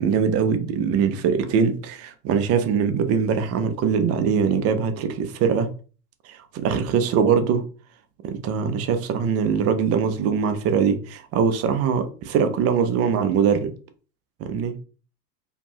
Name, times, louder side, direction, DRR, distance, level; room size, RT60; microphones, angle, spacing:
voice 1, 0.0-5.7 6.2-7.7 8.2-13.7 14.4-14.7, right 6 dB, 35° right, 0.4 m, -22 dB
2.7 x 2.2 x 2.7 m
hypercardioid pair, 95°, 48 cm